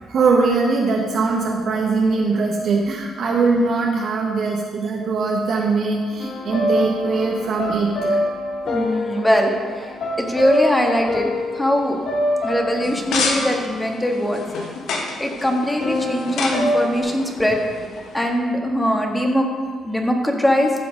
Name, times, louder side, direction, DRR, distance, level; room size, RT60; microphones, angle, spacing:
voice 1, 0.0-8.2, right 4 dB, 65° right, -2 dB, 1.6 m, -21 dB
sound 1, 6.2-15.0 15.8-17.0, left 1 dB, 60° left, 1.9 m, -26 dB
voice 2, 8.6-11.3 11.6-12.0 12.4-14.4 15.2-17.6 18.1-19.5 19.8-20.7, equal, 10° left, 2 dB, 1.7 m, -21 dB
sound 2, 12.8-18.3, left 4 dB, 80° left, 1.4 m, -29 dB
14.5 x 5.9 x 5.3 m, 1.5 s
cardioid pair, 90°, 0 cm